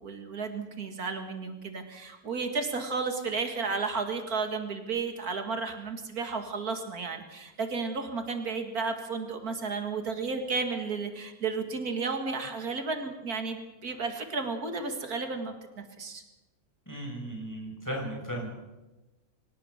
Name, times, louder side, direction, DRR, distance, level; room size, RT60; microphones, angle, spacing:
voice 1, 0.0-15.5 16.0-16.2, right 4 dB, 85° right, 6 dB, 2.6 m, -33 dB
voice 2, 16.9-18.5, right 1 dB, 10° left, 0 dB, 6.4 m, -36 dB
24.5 x 18.0 x 6.7 m, 1.1 s
omnidirectional pair, 1.5 m